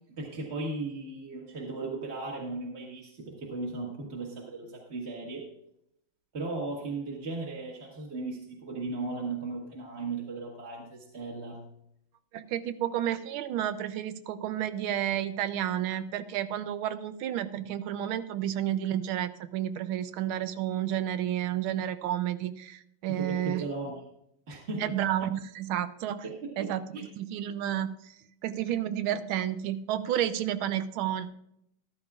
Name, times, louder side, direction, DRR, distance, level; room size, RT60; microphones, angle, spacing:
voice 1, 0.1-5.4 6.3-11.6 23.1-23.9 24.5-24.8 26.2-27.0, right 3 dB, 35° right, -3 dB, 1.7 m, -36 dB
voice 2, 12.3-23.7 24.8-26.3 26.6-31.3, right 11 dB, 80° right, 12 dB, 1.4 m, -31 dB
13.5 x 12.5 x 2.4 m, 0.77 s
omnidirectional pair, 2.3 m